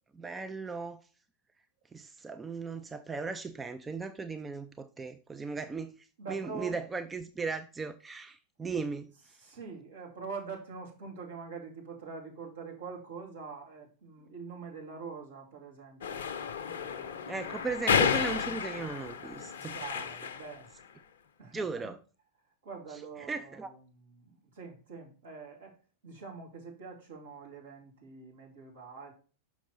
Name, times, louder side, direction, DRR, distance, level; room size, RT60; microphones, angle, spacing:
voice 1, 0.1-1.0 1.9-9.1 17.3-19.8 21.5-22.0 23.2-23.7, right 4 dB, 15° right, 0.5 m, -37 dB
voice 2, 6.2-6.8 9.3-16.3 16.7-17.4 19.6-20.7 21.4-21.9 22.6-25.8 26.0-29.1, right 5 dB, 65° right, 2.4 m, -45 dB
sound 1, 16.0-20.6, left 7 dB, 60° left, 0.6 m, -32 dB
6.0 x 5.9 x 4.0 m
figure-of-eight pair, 90°, 0 cm